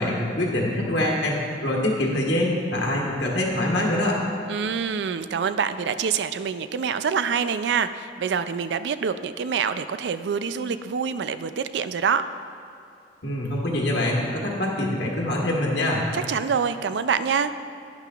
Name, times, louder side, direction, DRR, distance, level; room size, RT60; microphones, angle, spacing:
voice 1, 0.0-4.2 13.2-16.0, left 1 dB, 75° left, -3 dB, 1.4 m, -24 dB
voice 2, 4.5-12.2 16.1-17.5, right 6 dB, 75° right, 12 dB, 0.4 m, -26 dB
11.5 x 9.8 x 2.4 m, 2.5 s
head